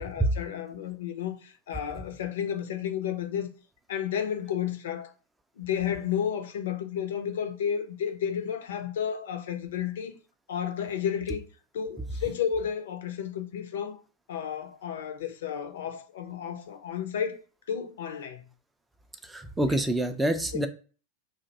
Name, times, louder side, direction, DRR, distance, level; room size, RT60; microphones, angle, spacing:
voice 1, 0.0-3.5 3.9-5.1 5.6-10.2 10.5-11.4 11.7-14.0 14.3-17.4 17.7-18.4, left 8 dB, 60° left, 0.5 m, -32 dB
voice 2, 19.2-20.7, right 1 dB, 10° right, 0.3 m, -26 dB
2.5 x 2.1 x 3.9 m
figure-of-eight pair, 90°, 0 cm